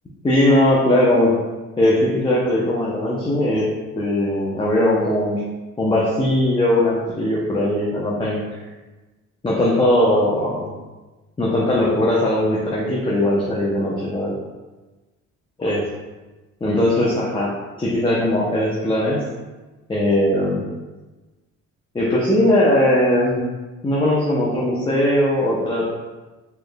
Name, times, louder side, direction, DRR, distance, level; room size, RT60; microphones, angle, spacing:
voice 1, 0.2-1.4 1.8-3.7 4.0-5.4 5.8-8.4 9.4-10.7 11.4-14.3 15.6-15.8 16.6-17.5 17.8-19.2 19.9-20.7 21.9-23.4 23.8-25.9, left 1 dB, 15° left, -5 dB, 0.7 m, -19 dB
4.1 x 3.3 x 2.3 m, 1.2 s
cardioid pair, 90°, 30 cm